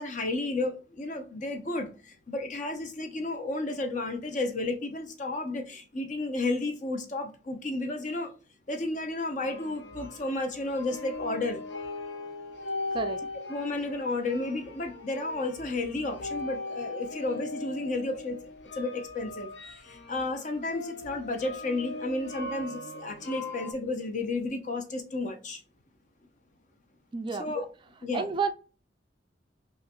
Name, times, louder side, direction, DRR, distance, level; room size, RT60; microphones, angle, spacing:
voice 1, 0.0-1.9 2.3-8.3 8.7-11.6 13.5-18.4 18.8-19.5 19.8-25.6 27.4-27.7 28.0-28.3, left 2 dB, 45° left, 0.7 m, -32 dB
sound 1, 9.4-23.7, left 2 dB, 80° left, 0.7 m, -39 dB
voice 2, 27.1-27.5 28.1-28.5, right 5 dB, 30° right, 0.3 m, -30 dB
5.5 x 2.5 x 2.2 m
head